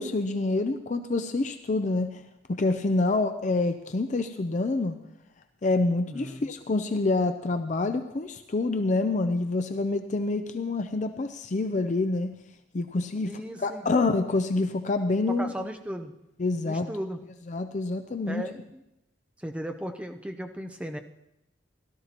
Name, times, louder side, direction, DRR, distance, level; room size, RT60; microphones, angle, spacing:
voice 1, 0.0-2.2 2.5-5.0 5.6-12.3 12.7-13.3 13.6-15.5 16.4-16.9 17.5-18.4, left 3 dB, 40° left, 8 dB, 0.5 m, -27 dB
voice 2, 6.1-6.5 13.2-13.8 15.3-16.1 16.7-17.2 18.3-18.6 19.4-21.0, equal, 5° right, 4 dB, 0.6 m, -36 dB
17.0 x 12.5 x 2.9 m, 0.89 s
head